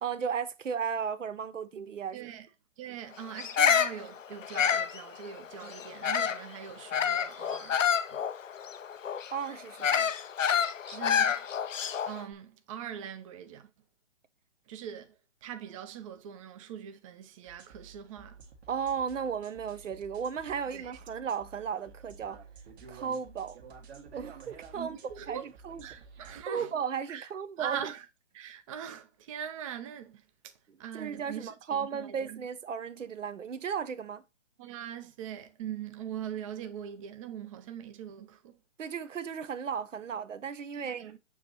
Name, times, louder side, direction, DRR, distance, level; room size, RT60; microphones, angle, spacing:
voice 1, 0.0-2.3 5.6-5.7 9.3-10.1 18.7-22.4 22.9-23.6 24.1-25.0 25.3-25.8 26.5-27.9 30.9-34.2 38.8-41.0, right 7 dB, 80° right, 0.9 m, -35 dB
voice 2, 2.1-2.5 2.8-7.8 8.1-8.2 10.9-11.5 12.1-13.7 14.7-15.1 15.4-18.4 20.7-20.9 24.7-25.5 25.8-26.7 27.1-27.3 27.6-28.0 28.3-30.5 30.8-32.4 34.6-38.6 40.7-41.2, right 9 dB, 25° right, 0.6 m, -42 dB
Bird vocalization bird call bird song, 3.4-6.5 6.9-12.2, left 7 dB, 85° left, 0.7 m, -28 dB
sound 1, 17.5-26.4, right 5 dB, 55° right, 1.6 m, -51 dB
7.3 x 3.0 x 4.2 m
hypercardioid pair, 135°, 37 cm